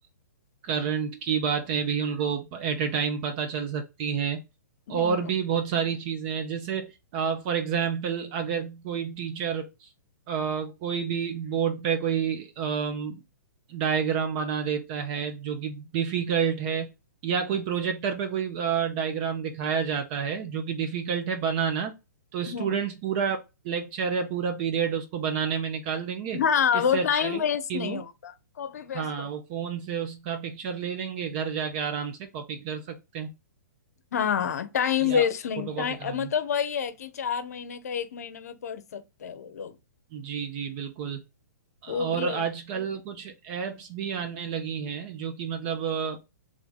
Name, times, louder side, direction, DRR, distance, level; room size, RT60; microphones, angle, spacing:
voice 1, 0.6-4.4 4.9-9.7 10.3-13.2 13.7-16.9 17.2-21.9 22.3-23.4 23.6-26.4 26.7-27.4 27.7-28.0 28.9-33.3 35.0-35.2 35.7-36.3 40.1-41.2 41.8-46.2, right 7 dB, 35° right, 0.7 m, -29 dB
voice 2, 4.9-5.3 22.5-22.8 26.3-29.3 34.1-39.8 41.9-42.4, left 8 dB, 60° left, 0.7 m, -28 dB
3.4 x 3.2 x 3.9 m
figure-of-eight pair, 120°, 10 cm